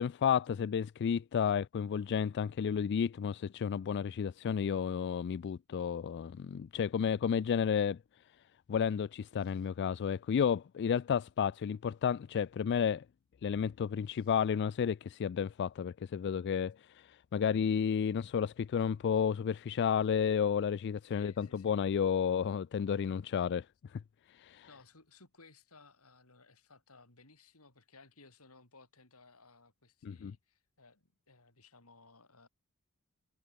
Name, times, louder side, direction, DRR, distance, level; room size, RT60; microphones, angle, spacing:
voice 1, 0.0-8.0 8.7-13.0 13.4-23.6 24.4-24.7 30.0-30.3, left 7 dB, 55° left, 0.3 m, -32 dB
voice 2, 21.0-21.9 24.7-32.5, left 3 dB, 85° left, 5.6 m, -60 dB
head